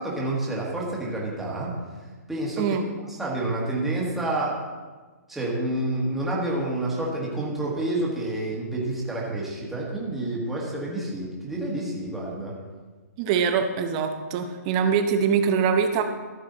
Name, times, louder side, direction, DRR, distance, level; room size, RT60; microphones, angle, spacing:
voice 1, 0.0-1.7 2.3-2.8 3.1-4.6 5.3-12.5, right 1 dB, 5° right, -5 dB, 1.5 m, -28 dB
voice 2, 13.2-16.0, right 6 dB, 25° right, 6 dB, 0.8 m, -23 dB
14.0 x 7.2 x 3.9 m, 1.4 s
hypercardioid pair, 165°, 9 cm